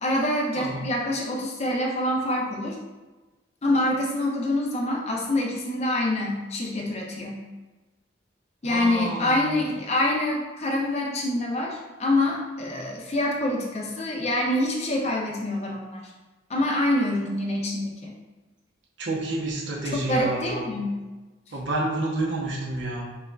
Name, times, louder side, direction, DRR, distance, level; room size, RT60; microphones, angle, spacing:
voice 1, 0.0-2.8 3.6-7.4 8.6-16.1 16.5-18.1 19.9-20.9, left 1 dB, 35° left, -1 dB, 0.5 m, -26 dB
voice 2, 0.5-0.8 8.6-9.6 19.0-20.7 21.5-23.0, right 2 dB, 70° right, -2 dB, 0.8 m, -29 dB
5.3 x 2.4 x 2.3 m, 1.2 s
head